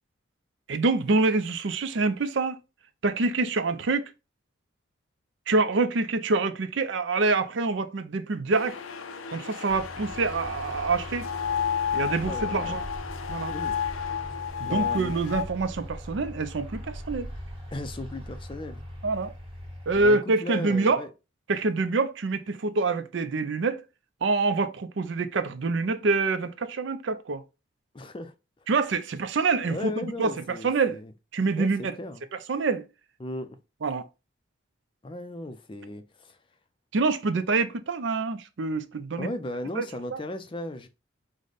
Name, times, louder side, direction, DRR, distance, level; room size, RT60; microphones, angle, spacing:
voice 1, 0.7-2.6 3.0-4.1 5.5-8.8 9.3-11.3 11.9-12.8 13.3-13.5 14.6-17.3 19.0-19.3 19.9-21.0 21.5-23.8 24.2-27.4 28.7-31.0 31.3-31.9 32.5-32.9 33.8-34.1 36.9-39.3 39.8-39.9 40.1-40.2, right 3 dB, 65° right, 0.5 m, -26 dB
sound 1, 8.5-15.4, left 8 dB, 85° left, 0.5 m, -32 dB
sound 2, 9.7-20.1, equal, 25° right, 1.4 m, -40 dB
voice 2, 12.3-12.8 13.5-13.8 14.6-15.2 17.7-18.8 19.9-21.1 27.9-28.7 29.6-31.1 31.6-32.2 33.2-33.6 35.0-36.4 39.2-40.9, left 1 dB, 25° left, 0.4 m, -37 dB
4.9 x 2.1 x 3.9 m
head